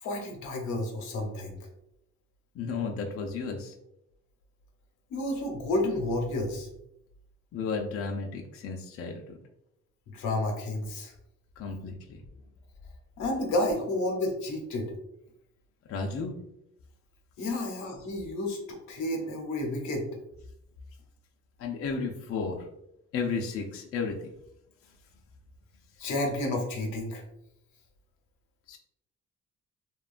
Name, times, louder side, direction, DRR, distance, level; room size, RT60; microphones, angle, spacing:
voice 1, 0.0-1.6 5.1-6.7 10.1-11.1 13.2-14.9 17.4-20.1 26.0-27.2, left 1 dB, 90° left, 2 dB, 0.7 m, -31 dB
voice 2, 2.5-3.7 7.5-9.4 11.6-12.2 15.9-16.3 21.6-22.7 23.1-24.3 28.7-28.8, left 4 dB, 50° left, 1 dB, 0.5 m, -33 dB
2.8 x 2.2 x 2.4 m, 0.78 s
cardioid pair, 105°, 29 cm